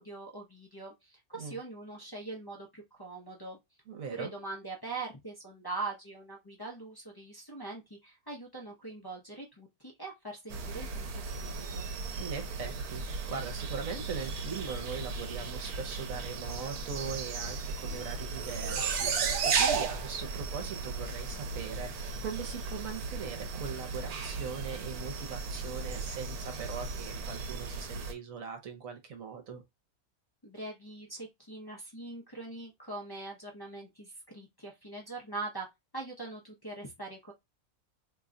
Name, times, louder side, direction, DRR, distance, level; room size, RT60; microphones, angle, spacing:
voice 1, 0.0-3.6 4.1-11.9 30.4-35.7 35.9-37.3, right 3 dB, 25° left, 0.5 m, -42 dB
voice 2, 3.9-4.3 12.2-29.6, right 6 dB, 70° right, 1.2 m, -40 dB
sound 1, 10.5-28.1, right 4 dB, 85° right, 1.2 m, -35 dB
2.9 x 2.2 x 3.7 m
omnidirectional pair, 1.5 m